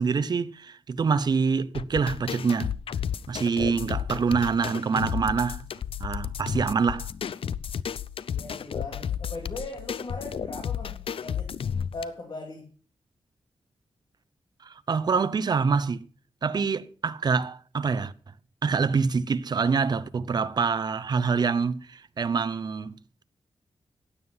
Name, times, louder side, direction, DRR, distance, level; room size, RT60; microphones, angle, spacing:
voice 1, 0.0-2.7 3.3-5.7 6.0-7.1 14.6-16.0 16.4-18.1 18.6-23.2, right 5 dB, 45° right, 0.7 m, -26 dB
sound 1, 1.7-12.0, left 8 dB, 70° left, 0.5 m, -32 dB
voice 2, 8.3-11.5 11.9-12.7, left 2 dB, 50° left, 3.3 m, -39 dB
15.5 x 9.6 x 5.5 m
wide cardioid pair, 165°, 10 cm